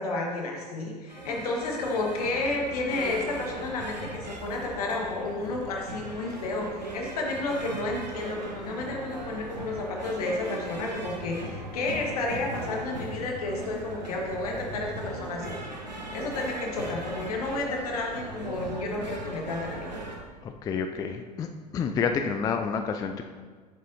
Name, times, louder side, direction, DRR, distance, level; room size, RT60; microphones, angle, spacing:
voice 1, 0.0-15.6 16.1-19.9, left 2 dB, 65° left, 0 dB, 1.4 m, -31 dB
sound 1, 1.1-20.2, right 1 dB, 85° right, 1.1 m, -38 dB
voice 2, 20.4-21.5 21.7-23.2, left 6 dB, 20° left, 6 dB, 0.3 m, -29 dB
7.9 x 7.5 x 2.7 m, 1.5 s
figure-of-eight pair, 80°, 21 cm